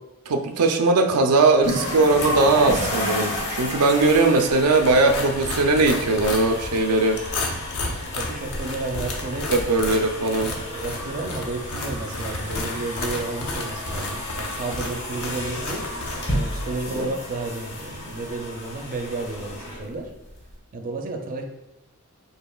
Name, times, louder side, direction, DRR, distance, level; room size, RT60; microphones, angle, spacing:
voice 1, 0.3-7.2 9.5-10.5 17.0-17.1, right 3 dB, 90° right, 5 dB, 0.5 m, -19 dB
sound 1, 1.6-20.5, left 1 dB, 50° left, 1.1 m, -32 dB
sound 2, 4.8-16.7, left 2 dB, 70° left, 0.7 m, -33 dB
voice 2, 8.1-9.5 10.4-15.9 16.3-20.1 20.7-21.4, right 2 dB, 40° right, 3 dB, 0.4 m, -32 dB
5.5 x 3.7 x 2.3 m, 0.96 s
head